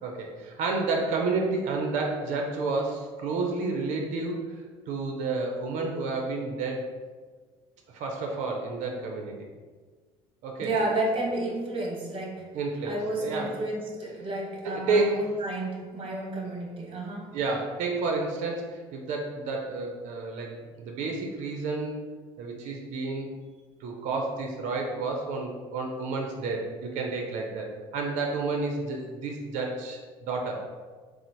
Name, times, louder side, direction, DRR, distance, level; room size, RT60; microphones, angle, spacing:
voice 1, 0.0-6.9 7.9-9.5 10.4-10.7 12.5-13.5 14.6-15.3 17.3-22.0 22.4-23.3 23.8-30.6, right 3 dB, 65° right, 1 dB, 0.6 m, -30 dB
voice 2, 10.6-12.4 12.8-17.3, right 2 dB, 40° right, -2 dB, 1.2 m, -31 dB
3.8 x 2.1 x 4.4 m, 1.5 s
supercardioid pair, 75°, 14 cm